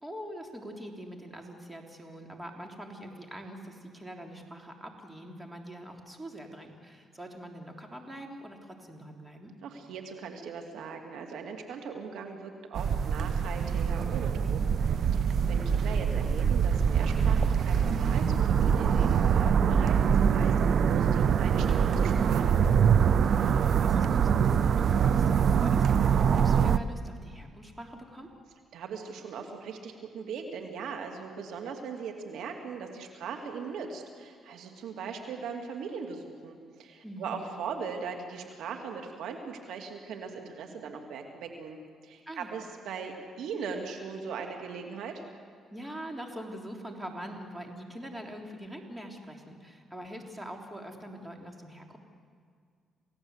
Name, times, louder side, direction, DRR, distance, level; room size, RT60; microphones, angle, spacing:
voice 1, 0.0-9.5 23.3-28.3 37.0-37.3 42.3-42.6 45.7-52.0, equal, 15° right, 2 dB, 3.5 m, -43 dB
voice 2, 9.6-14.8 15.1-22.7 28.7-45.2, right 5 dB, 80° right, 3 dB, 2.6 m, -39 dB
sound 1, 12.8-26.8, right 7 dB, 60° right, 0.7 m, -24 dB
28.5 x 17.0 x 8.1 m, 2.1 s
cardioid pair, 90°, 0 cm